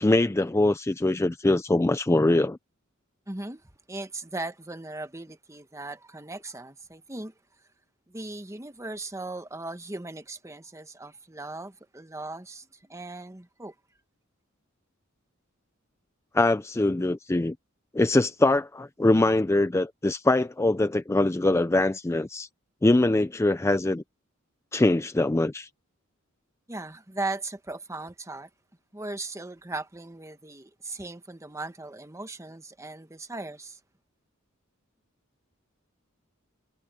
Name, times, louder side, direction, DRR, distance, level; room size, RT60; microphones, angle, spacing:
voice 1, 0.0-2.6 16.3-17.6 17.9-22.5 22.8-24.0 24.7-25.7, left 2 dB, 15° left, 0.4 m, -23 dB
voice 2, 3.3-7.3 8.1-13.7 26.7-28.5 28.9-33.8, right 2 dB, 15° right, 1.2 m, -38 dB
head